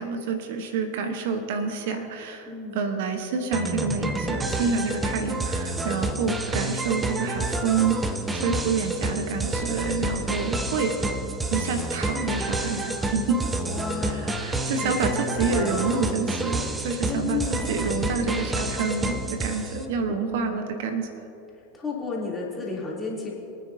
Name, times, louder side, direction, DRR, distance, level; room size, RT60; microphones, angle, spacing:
voice 1, 0.0-11.0 11.5-13.5 14.0-21.1, right 5 dB, 60° right, 7 dB, 1.0 m, -28 dB
voice 2, 2.5-2.8 8.4-8.6 13.6-15.9 17.1-17.8 20.2-20.6 21.7-23.3, left 4 dB, 15° left, -4 dB, 3.1 m, -33 dB
sound 1, 3.5-19.8, right 2 dB, 15° right, 1.0 m, -29 dB
23.5 x 9.4 x 2.8 m, 3.0 s
hypercardioid pair, 90°, 0 cm